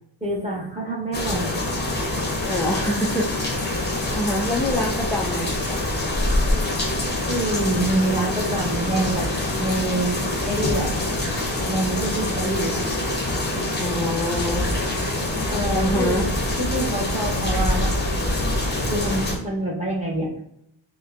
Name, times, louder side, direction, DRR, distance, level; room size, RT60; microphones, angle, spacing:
voice 1, 0.2-1.5 7.3-9.3 9.6-10.9 11.7-12.8 15.5-16.2 16.6-18.0 18.9-20.3, right 1 dB, 15° right, -3 dB, 1.1 m, -26 dB
sound 1, 1.1-19.4, left 1 dB, 20° left, 0.7 m, -25 dB
voice 2, 2.5-5.8 13.8-14.7 15.7-16.3, left 1 dB, 5° left, -2 dB, 0.3 m, -26 dB
5.2 x 2.2 x 2.5 m, 0.75 s
wide cardioid pair, 125°, 49 cm